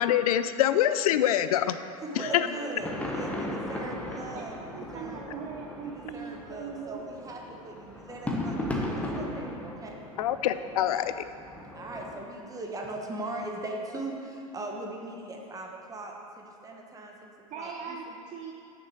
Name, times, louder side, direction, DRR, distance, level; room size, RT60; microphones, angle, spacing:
voice 1, 0.0-1.8 2.2-2.5 10.2-11.1, left 11 dB, 70° left, 12 dB, 0.5 m, -25 dB
voice 2, 2.0-5.2 5.8-10.0 11.7-18.1, right 2 dB, 20° right, 0 dB, 1.3 m, -39 dB
sound 1, 2.8-12.2, left 1 dB, 5° left, 1.2 m, -37 dB
voice 3, 4.7-7.0 14.2-14.3 17.5-18.5, right 6 dB, 40° right, 1 dB, 0.7 m, -40 dB
6.5 x 6.3 x 6.6 m, 2.4 s
hypercardioid pair, 95°, 19 cm